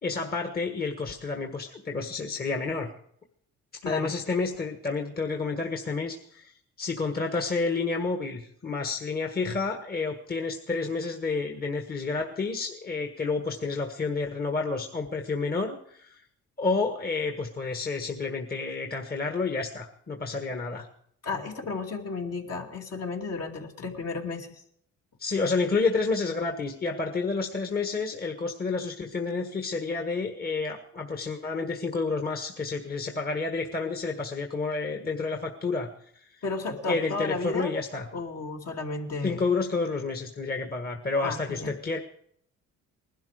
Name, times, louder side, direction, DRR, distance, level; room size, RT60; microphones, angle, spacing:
voice 1, 0.0-2.9 3.8-16.2 16.6-20.9 25.2-35.9 36.1-36.3 36.9-38.1 39.2-42.0, left 4 dB, 30° left, 4 dB, 1.7 m, -30 dB
voice 2, 3.8-4.1 21.2-24.6 36.4-37.7 38.1-39.4 41.2-41.8, left 3 dB, 55° left, 1 dB, 2.6 m, -33 dB
20.0 x 12.0 x 5.0 m, 0.66 s
cardioid pair, 90°, 30 cm